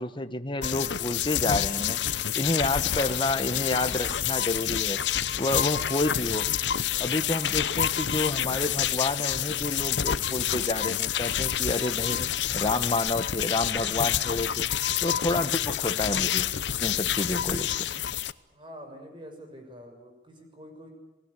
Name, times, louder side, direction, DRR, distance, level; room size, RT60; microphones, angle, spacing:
voice 1, 0.0-2.0 2.3-5.0 5.4-6.5 7.0-14.7 15.0-16.5 16.8-17.9, left 2 dB, 30° left, 9 dB, 1.2 m, -29 dB
sound 1, 0.6-18.3, left 10 dB, 85° left, 0.8 m, -28 dB
voice 2, 18.5-20.9, equal, 30° right, 5 dB, 6.2 m, -46 dB
28.5 x 19.5 x 8.4 m, 1.0 s
head